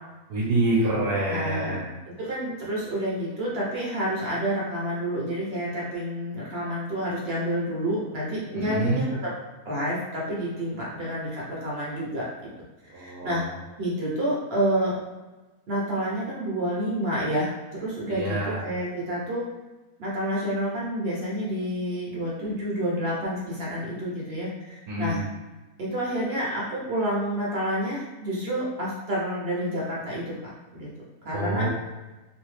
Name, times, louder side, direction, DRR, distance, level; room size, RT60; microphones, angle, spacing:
voice 1, 0.3-1.9 8.5-9.0 12.9-13.4 18.1-18.6 24.9-25.2 31.3-31.7, right 2 dB, 80° right, -5 dB, 1.2 m, -26 dB
voice 2, 1.3-1.8 2.2-9.3 9.6-12.2 12.9-13.4 13.8-15.0 15.7-19.4 20.0-24.5 25.0-25.2 25.8-30.9 31.2-31.7, equal, 50° right, -5 dB, 0.8 m, -29 dB
3.1 x 2.7 x 3.1 m, 1.1 s
omnidirectional pair, 1.6 m